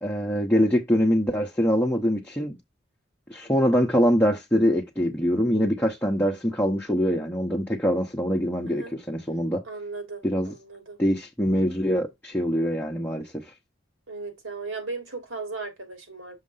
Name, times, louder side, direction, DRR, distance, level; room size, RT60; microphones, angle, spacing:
voice 1, 0.0-2.5 3.3-9.6 10.2-10.5 11.0-13.4, equal, 10° left, 1.0 m, -24 dB
voice 2, 9.6-11.0 14.1-16.4, right 3 dB, 80° right, 3.2 m, -36 dB
6.5 x 2.9 x 5.6 m
head